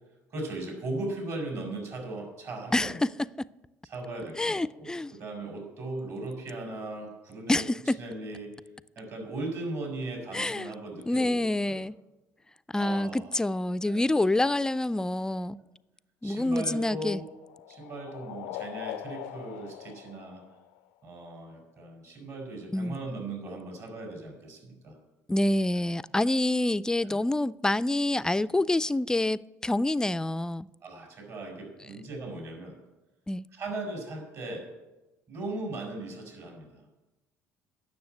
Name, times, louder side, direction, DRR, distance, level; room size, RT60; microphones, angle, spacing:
voice 1, 0.3-3.0 3.9-4.9 5.2-7.6 8.0-8.5 8.9-11.8 12.8-13.3 13.9-14.0 16.2-17.2 17.7-20.4 21.0-25.0 27.0-27.2 30.8-32.8 33.5-34.6 35.3-36.9, right 2 dB, 55° right, 4.7 m, -38 dB
voice 2, 2.7-3.5 4.4-5.1 7.5-8.0 10.3-10.7 11.1-11.9 12.7-15.6 16.2-17.2 22.7-23.0 25.3-30.7 33.3-33.4, left 1 dB, 10° left, 0.3 m, -27 dB
sound 1, 16.3-21.1, left 12 dB, 90° left, 0.4 m, -42 dB
9.5 x 6.7 x 9.0 m
supercardioid pair, 80°, 7 cm